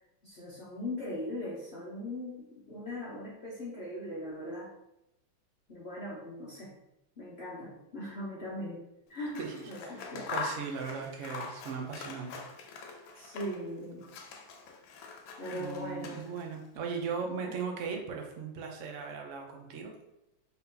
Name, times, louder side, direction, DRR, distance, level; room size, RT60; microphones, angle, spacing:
voice 1, 0.2-4.7 5.7-6.7 7.2-8.8 9.1-10.3 13.2-14.1 15.4-16.2 17.2-17.6, left 1 dB, 55° left, -6 dB, 0.7 m, -40 dB
Scissors, 9.2-13.7 14.0-16.6, left 4 dB, 80° left, 1.4 m, -43 dB
voice 2, 10.3-12.5 13.2-13.3 15.5-20.0, right 5 dB, 75° right, 2 dB, 0.6 m, -38 dB
4.1 x 2.7 x 3.7 m, 0.89 s
omnidirectional pair, 2.1 m